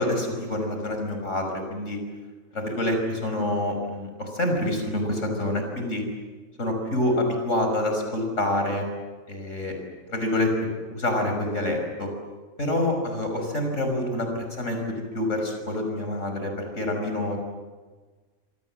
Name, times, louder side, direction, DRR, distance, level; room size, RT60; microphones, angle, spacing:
voice 1, 0.0-2.0 2.5-6.0 6.6-8.8 9.3-9.8 10.1-10.5 10.9-12.1 12.6-17.4, left 1 dB, 70° left, 3 dB, 6.2 m, -27 dB
27.0 x 25.5 x 7.5 m, 1.4 s
omnidirectional pair, 1.3 m